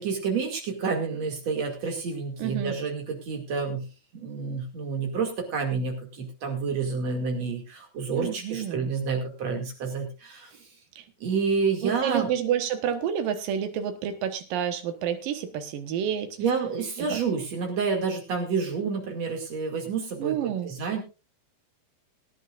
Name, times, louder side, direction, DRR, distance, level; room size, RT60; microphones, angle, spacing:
voice 1, 0.0-3.9 4.1-10.6 11.2-12.3 16.4-21.0, right 5 dB, 45° right, 2 dB, 3.1 m, -29 dB
voice 2, 2.4-2.7 8.1-8.9 11.0-11.1 11.8-16.4 20.2-20.7, right 9 dB, 65° right, 7 dB, 2.6 m, -29 dB
22.0 x 10.0 x 2.5 m, 0.30 s
omnidirectional pair, 4.9 m